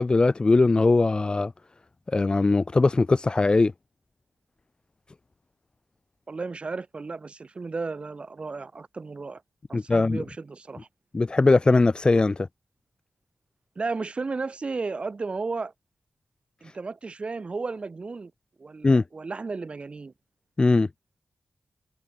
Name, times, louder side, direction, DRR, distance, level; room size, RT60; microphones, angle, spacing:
voice 1, 0.0-1.5 2.1-3.7 9.7-10.2 11.1-12.5 16.6-16.7 18.8-19.0 20.6-20.9, left 3 dB, 35° left, 0.9 m, -20 dB
voice 2, 6.3-9.4 9.7-10.9 13.8-15.7 16.6-18.3 18.6-20.1, right 4 dB, 50° right, 2.1 m, -34 dB
cardioid pair, 60°, 3 cm